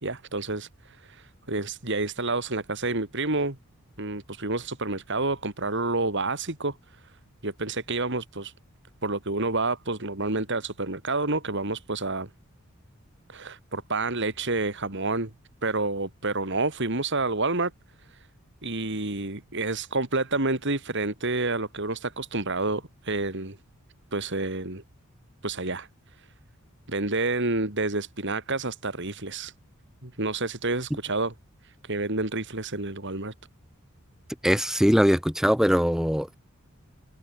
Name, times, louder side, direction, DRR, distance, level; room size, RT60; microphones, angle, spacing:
voice 1, 0.0-3.6 4.0-6.7 7.4-8.5 9.0-12.3 13.3-15.3 15.6-17.7 18.1-18.3 18.6-23.6 24.1-24.8 25.4-25.9 26.2-26.3 26.9-29.5 30.0-31.3 31.6-33.3, right 3 dB, 55° right, 3.5 m, -29 dB
voice 2, 34.4-36.3, equal, ahead, 5.2 m, -21 dB
head